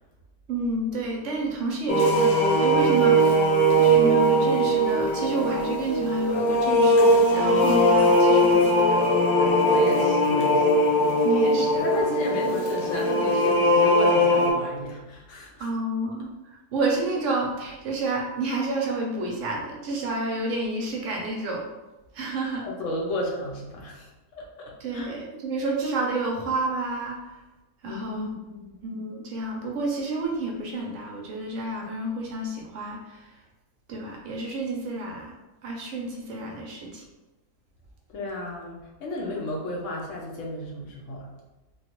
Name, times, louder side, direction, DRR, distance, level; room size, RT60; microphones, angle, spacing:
voice 1, 0.5-3.3 3.8-9.0 11.2-11.9 15.6-16.3 16.7-21.6 22.1-22.7 24.8-27.3 27.8-28.3 28.8-33.3 33.9-35.3 35.6-37.0, right 2 dB, 65° right, 0 dB, 0.7 m, -29 dB
sound 1, 1.9-14.5, equal, 85° left, 1.3 m, -20 dB
voice 2, 9.4-11.1 11.8-15.7 22.6-25.1 27.8-28.8 38.1-41.3, left 1 dB, 65° left, -1 dB, 0.8 m, -33 dB
3.1 x 2.3 x 2.9 m, 1.1 s
omnidirectional pair, 1.7 m